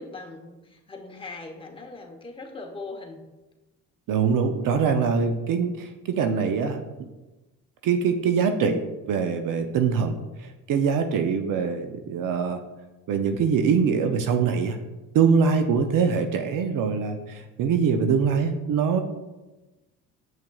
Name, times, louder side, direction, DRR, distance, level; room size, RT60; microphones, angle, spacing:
voice 1, 0.0-3.2, left 3 dB, 15° left, 2 dB, 1.0 m, -40 dB
voice 2, 4.1-6.8 7.8-8.8 9.1-10.2 10.4-12.6 13.1-14.8 15.1-19.0, right 6 dB, 60° right, 7 dB, 0.7 m, -23 dB
7.5 x 5.8 x 2.3 m, 1.1 s
supercardioid pair, 70°, 37 cm